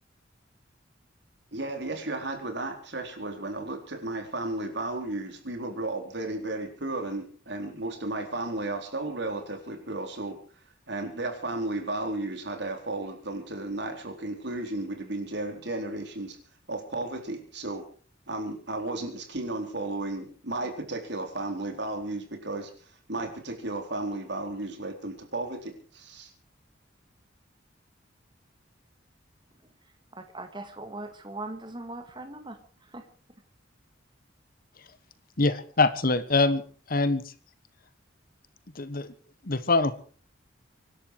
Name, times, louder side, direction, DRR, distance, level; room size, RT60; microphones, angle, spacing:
voice 1, 1.5-10.4 10.9-16.4 16.7-17.8 18.3-26.3, right 2 dB, 60° right, 5 dB, 4.0 m, -34 dB
voice 2, 29.8-33.4, right 2 dB, 25° right, 7 dB, 1.9 m, -41 dB
voice 3, 35.4-36.6 36.9-37.2 38.7-39.1 39.4-39.9, left 3 dB, 50° left, 14 dB, 1.3 m, -24 dB
25.0 x 11.5 x 4.7 m, 0.42 s
head